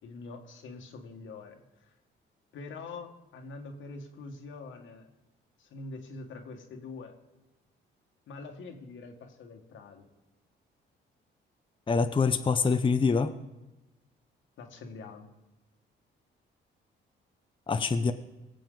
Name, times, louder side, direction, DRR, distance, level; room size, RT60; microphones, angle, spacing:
voice 1, 0.0-1.9 2.5-5.1 5.6-7.1 8.3-10.1 14.6-15.3, left 3 dB, 75° left, 4 dB, 1.7 m, -44 dB
voice 2, 11.9-13.3 17.7-18.1, left 5 dB, 25° left, 8 dB, 0.7 m, -25 dB
19.5 x 7.7 x 3.9 m, 1.0 s
cardioid pair, 90°, 20 cm